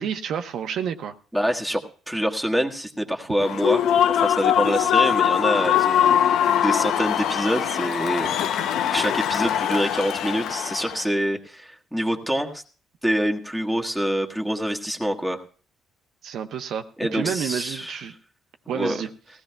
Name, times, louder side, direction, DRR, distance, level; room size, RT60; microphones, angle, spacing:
voice 1, 0.0-1.1 16.2-16.8 17.1-18.1 18.7-19.1, right 8 dB, 70° right, 6 dB, 0.8 m, -29 dB
voice 2, 1.3-3.8 4.1-12.6 13.0-15.4 17.0-18.0 18.7-19.0, equal, ahead, 1 dB, 1.4 m, -26 dB
Human voice / Cheering / Applause, 3.4-11.1, left 10 dB, 75° left, 0.6 m, -22 dB
18.5 x 15.5 x 2.3 m, 0.39 s
cardioid pair, 105°, 0 cm